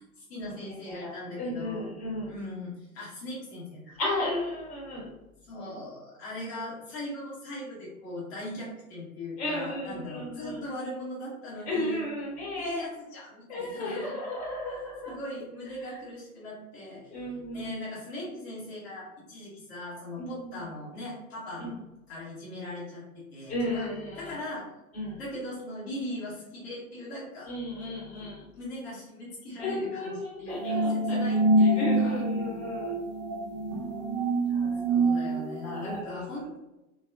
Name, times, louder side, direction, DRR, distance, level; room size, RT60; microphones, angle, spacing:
voice 1, 0.0-1.9 2.3-4.0 5.4-12.1 12.6-14.1 15.0-17.1 17.5-21.7 22.1-23.9 24.1-24.7 25.2-27.5 27.8-28.3 28.5-32.2 34.8-36.6, left 1 dB, 45° left, -6 dB, 1.0 m, -39 dB
voice 2, 0.9-2.3 4.0-5.1 9.4-10.6 11.6-12.8 13.5-15.1 15.8-16.0 17.1-17.7 20.2-20.7 21.6-21.7 23.5-24.3 24.9-25.2 27.4-28.4 29.6-31.2 31.6-32.9 33.4-33.9 34.5-34.8 35.6-36.3, left 1 dB, 15° left, -6 dB, 1.0 m, -34 dB
sound 1, 30.5-36.0, right 1 dB, 30° right, 0.4 m, -26 dB
2.3 x 2.3 x 2.4 m, 0.96 s
figure-of-eight pair, 100°, 43 cm